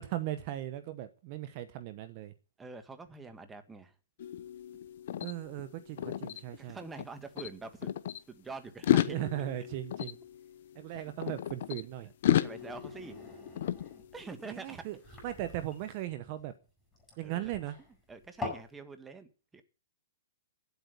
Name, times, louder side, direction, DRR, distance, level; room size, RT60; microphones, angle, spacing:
voice 1, 0.0-2.3 5.2-6.8 9.1-10.2 10.7-12.1 14.4-15.0 15.2-16.5 17.2-17.8, right 13 dB, 40° right, 0.9 m, -38 dB
voice 2, 2.6-3.9 6.6-7.9 8.3-9.2 12.3-13.2 14.1-14.9 17.2-17.5 18.1-19.6, right 4 dB, 10° right, 1.5 m, -45 dB
sound 1, 4.2-7.1 7.4-8.2 8.7-11.8 12.2-14.5, left 11 dB, 55° left, 0.9 m, -33 dB
sound 2, 12.2-18.7, left 3 dB, 10° left, 7.8 m, -45 dB
9.9 x 8.2 x 8.2 m
hypercardioid pair, 140°, 0 cm